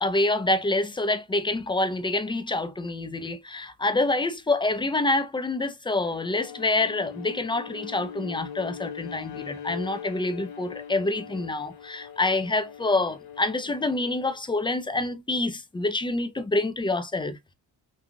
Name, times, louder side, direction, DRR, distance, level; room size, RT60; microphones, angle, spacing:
voice 1, 0.0-17.4, left 2 dB, 10° left, 0.4 m, -27 dB
Bowed string instrument, 6.0-14.4, left 8 dB, 55° left, 0.7 m, -41 dB
2.8 x 2.3 x 2.4 m
cardioid pair, 60°, 46 cm